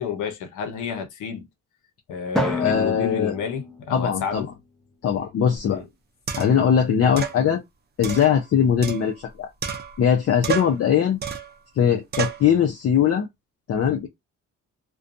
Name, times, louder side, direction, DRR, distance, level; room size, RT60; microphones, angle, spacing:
voice 1, 0.0-1.5 2.1-4.5 5.7-5.9, left 7 dB, 85° left, 0.8 m, -30 dB
Drum, 2.4-4.6, left 1 dB, ahead, 0.7 m, -29 dB
voice 2, 2.6-3.3 3.9-4.5 5.0-5.8 6.4-7.6 8.0-9.5 10.0-11.2 11.8-13.3 13.7-14.1, left 8 dB, 50° left, 0.6 m, -20 dB
sound 1, 5.6-5.7 6.3-6.7 7.2-7.4 8.0-9.3 9.6-10.1 10.4-10.8 11.2-11.6 12.1-12.5, right 7 dB, 35° right, 0.6 m, -30 dB
2.5 x 2.3 x 2.5 m
cardioid pair, 90°, 30 cm